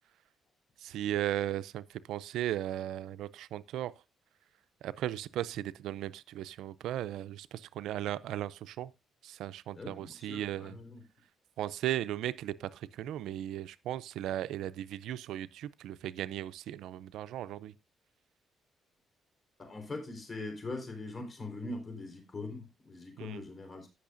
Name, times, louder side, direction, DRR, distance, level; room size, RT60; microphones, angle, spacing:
voice 1, 0.8-3.9 4.8-8.9 9.2-10.8 11.6-17.7 23.2-23.4, right 12 dB, 85° right, 0.4 m, -36 dB
voice 2, 9.7-11.0 19.6-23.9, left 2 dB, 30° left, 4.1 m, -42 dB
17.0 x 6.3 x 2.5 m
cardioid pair, 90°, 0 cm